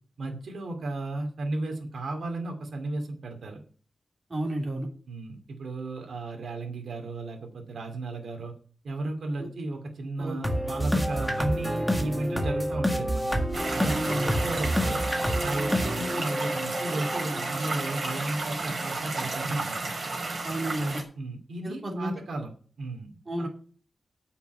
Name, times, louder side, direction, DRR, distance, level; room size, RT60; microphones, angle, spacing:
voice 1, 0.2-3.6 5.1-8.5 8.8-13.4 13.7-15.0 15.4-19.9 21.2-22.5 22.8-23.5, right 2 dB, 90° right, 3 dB, 2.3 m, -34 dB
voice 2, 4.3-4.9 9.4-9.5 10.2-10.4 13.9-14.3 20.4-21.0 21.6-22.1 23.3-23.5, right 1 dB, 35° right, 1 dB, 3.2 m, -31 dB
sound 1, 10.4-18.4, equal, ahead, 1.7 m, -29 dB
sound 2, 13.5-21.0, right 3 dB, 55° right, 4.6 m, -32 dB
9.1 x 5.9 x 8.1 m, 0.43 s
wide cardioid pair, 120°, 0 cm